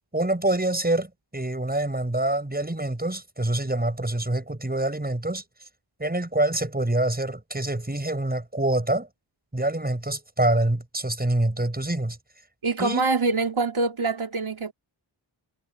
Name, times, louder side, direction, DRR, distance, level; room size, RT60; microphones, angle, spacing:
voice 1, 0.1-5.4 6.0-9.1 9.5-12.2 12.8-13.1, right 1 dB, 20° right, 6.0 m, -26 dB
voice 2, 12.6-14.7, right 3 dB, 85° right, 3.0 m, -25 dB
wide cardioid pair, 85°, 48 cm